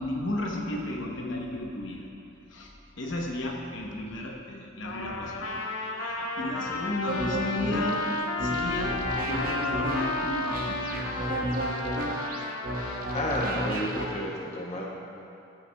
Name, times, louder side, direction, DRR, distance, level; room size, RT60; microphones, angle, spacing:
voice 1, 0.0-2.1 2.5-2.7 3.0-5.7 6.0-8.0 8.4-9.0 9.2-11.0, left 1 dB, 60° left, -1 dB, 0.9 m, -33 dB
Trumpet, 4.8-13.4, left 2 dB, 90° left, 0.8 m, -33 dB
sound 1, 7.1-14.1, right 1 dB, 45° right, 0.7 m, -32 dB
voice 2, 13.1-14.8, left 1 dB, 30° left, -3 dB, 0.7 m, -31 dB
15.0 x 5.7 x 2.3 m, 2.7 s
head